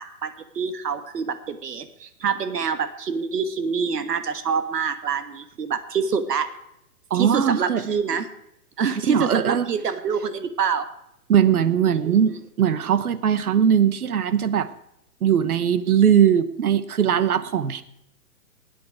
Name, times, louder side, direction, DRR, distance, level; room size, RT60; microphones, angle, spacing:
voice 1, 0.0-6.5 7.1-8.3 8.8-10.8 12.0-12.4, right 6 dB, 90° right, 10 dB, 1.6 m, -26 dB
voice 2, 7.1-7.8 9.1-9.7 11.3-14.7 15.2-17.8, right 8 dB, 65° right, 14 dB, 1.1 m, -20 dB
17.0 x 9.4 x 4.7 m, 0.80 s
hypercardioid pair, 175°, 47 cm